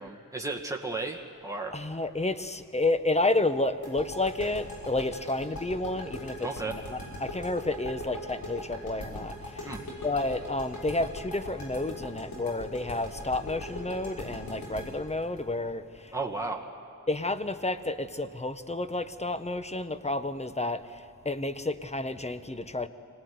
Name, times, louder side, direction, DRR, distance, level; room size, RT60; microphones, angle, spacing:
voice 1, 0.0-1.8 6.4-6.8 9.6-9.8 16.1-16.7, right 3 dB, 10° right, 0 dB, 2.2 m, -34 dB
voice 2, 1.7-9.7 10.0-16.1 17.1-22.9, left 2 dB, 20° left, 11 dB, 1.2 m, -30 dB
sound 1, 3.8-16.6, left 1 dB, 85° left, 6.1 m, -39 dB
25.0 x 18.5 x 9.6 m, 2.4 s
cardioid pair, 60°, 33 cm